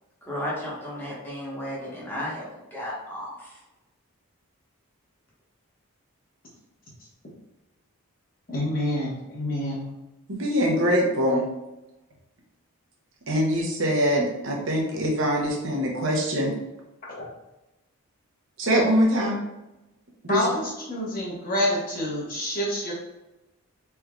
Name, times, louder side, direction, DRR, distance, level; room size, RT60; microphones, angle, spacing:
voice 1, 0.3-2.5 2.7-3.5, equal, 10° left, -8 dB, 1.1 m, -33 dB
voice 2, 8.5-9.8 17.2-17.3 20.3-22.9, left 1 dB, 40° left, -5 dB, 1.0 m, -27 dB
voice 3, 10.3-11.4 13.3-16.5 18.6-19.4 20.2-20.5, equal, 60° right, -2 dB, 0.8 m, -23 dB
3.5 x 3.3 x 2.3 m, 0.98 s
head